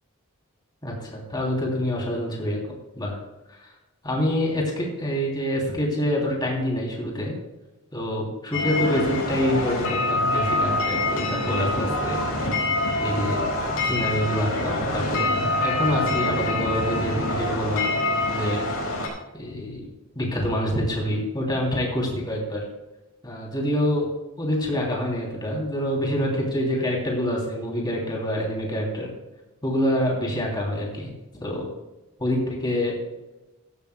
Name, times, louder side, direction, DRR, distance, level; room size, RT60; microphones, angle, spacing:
voice 1, 0.8-2.6 3.0-3.2 3.5-3.7 4.0-7.3 7.9-12.2 13.0-13.4 13.9-15.3 15.6-17.9 18.3-18.6 19.3-19.9 20.1-22.7 23.2-24.1 24.4-29.1 29.6-31.1 31.4-31.7 32.2-33.0, equal, 20° left, -2 dB, 3.0 m, -26 dB
sound 1, 8.5-19.1, left 2 dB, 80° left, 4.5 m, -25 dB
15.0 x 12.5 x 2.2 m, 1.1 s
head